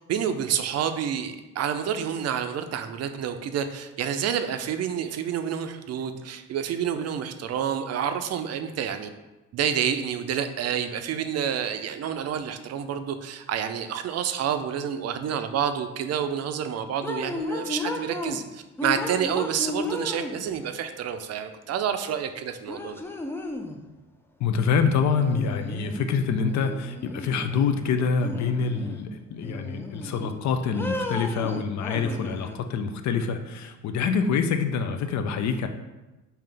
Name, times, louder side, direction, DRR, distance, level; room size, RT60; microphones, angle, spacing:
voice 1, 0.1-9.1 9.5-23.0, right 8 dB, 55° right, 8 dB, 0.4 m, -29 dB
sound 1, 17.0-18.4 18.8-20.7 22.1-22.2 22.7-23.8 25.1-26.1 26.5-27.7 28.2-29.0 29.4-30.4 30.7-32.6, left 2 dB, 10° left, 0.3 m, -34 dB
voice 2, 24.4-35.7, left 5 dB, 65° left, 7 dB, 0.5 m, -26 dB
3.8 x 2.8 x 3.3 m, 1.1 s
cardioid pair, 90°, 30 cm